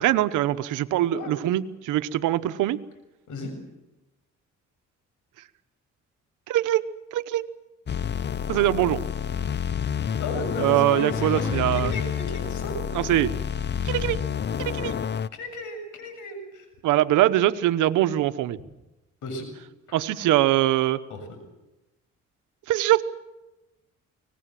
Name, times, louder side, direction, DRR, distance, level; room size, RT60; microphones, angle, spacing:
voice 1, 0.0-2.8 6.5-6.8 7.1-7.5 8.5-9.0 10.6-11.9 12.9-13.3 13.8-14.2 14.6-15.0 16.8-18.6 19.9-21.0 22.7-23.0, right 14 dB, 90° right, 12 dB, 1.1 m, -22 dB
sound 1, 7.9-15.3, left 8 dB, 35° left, 0.7 m, -29 dB
voice 2, 10.2-12.7 15.3-16.7 19.2-19.5 19.9-20.0 21.1-21.2, left 2 dB, 85° left, 6 dB, 7.3 m, -35 dB
24.5 x 19.0 x 7.7 m, 0.98 s
cardioid pair, 90°, 30 cm